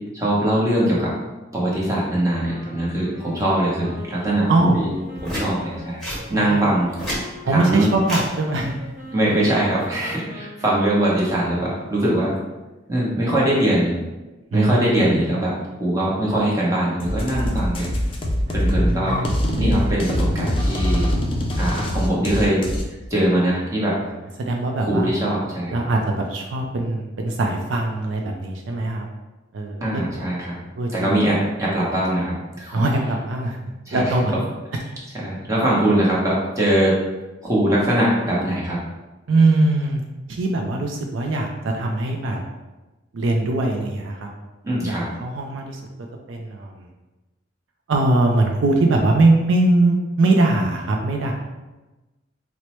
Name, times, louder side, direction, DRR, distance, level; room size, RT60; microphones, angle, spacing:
voice 1, 0.1-1.1 1.5-4.9 5.2-6.9 7.5-7.9 9.1-12.3 12.9-14.0 14.5-15.5 15.8-17.9 18.5-19.2 19.6-21.1 21.6-22.7 23.1-24.0 24.8-25.8 29.8-30.6 30.9-32.8 33.9-34.0 35.2-37.0 37.4-38.8 44.6-45.0, right 1 dB, 15° right, -6 dB, 0.9 m, -21 dB
sound 1, 2.4-12.8, equal, 45° right, 0.9 m, -42 dB
sound 2, 5.2-5.5 6.0-6.2 6.8-7.2 8.0-8.3 9.6-9.8, equal, ahead, 1.2 m, -28 dB
voice 2, 7.4-8.7 9.3-9.4 14.5-15.3 18.5-19.3 24.4-25.1 25.7-29.1 29.5-30.0 30.8-31.2 32.7-33.6 33.9-34.3 39.3-40.0 40.3-42.4 43.1-44.3 44.8-45.8 46.3-46.9 47.9-51.3, right 2 dB, 70° right, 1 dB, 0.4 m, -21 dB
sound 3, 17.0-22.8, equal, 30° left, 0.4 m, -23 dB
4.3 x 2.0 x 3.0 m, 1.1 s
head